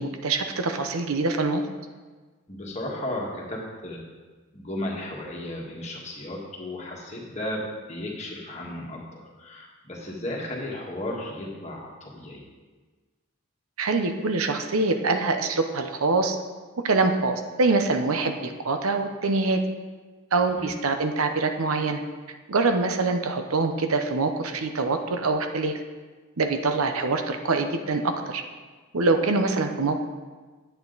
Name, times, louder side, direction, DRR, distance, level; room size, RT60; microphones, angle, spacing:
voice 1, 0.0-1.6 13.8-16.4 16.8-19.6 20.3-22.0 22.5-25.8 26.4-28.4 28.9-30.0, right 3 dB, 90° right, 6 dB, 0.8 m, -24 dB
voice 2, 2.5-4.0 4.5-12.4 20.6-20.7, left 1 dB, 30° left, -2 dB, 1.6 m, -34 dB
9.6 x 8.1 x 4.0 m, 1.4 s
head